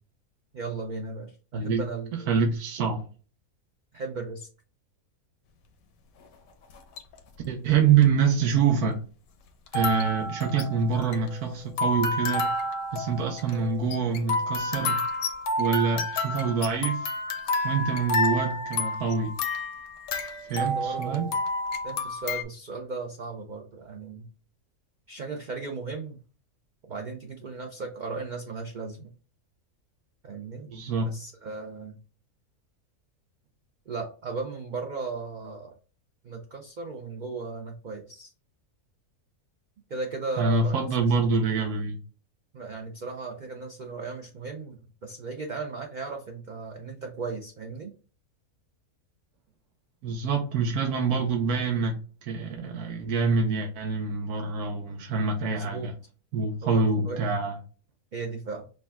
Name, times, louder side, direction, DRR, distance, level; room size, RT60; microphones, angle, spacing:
voice 1, 0.5-2.3 3.9-4.5 20.6-21.4 21.8-24.3 25.1-26.2 26.9-29.1 30.2-30.7 31.0-32.0 33.9-35.7 36.2-38.3 39.9-41.1 42.5-47.9 55.5-55.9 56.6-57.2 58.1-58.7, right 4 dB, 65° right, 0.4 m, -36 dB
voice 2, 2.3-3.0 7.5-9.0 9.7-12.5 12.9-15.0 15.6-17.1 17.6-19.3 20.5-21.3 30.7-31.1 40.4-42.0 50.0-51.9 52.2-55.9 56.3-57.6, right 5 dB, 90° right, 1.3 m, -26 dB
sound 1, 6.7-7.2 8.0-8.1 9.7-22.4, left 2 dB, 75° left, 1.1 m, -30 dB
5.1 x 2.3 x 3.5 m
omnidirectional pair, 1.6 m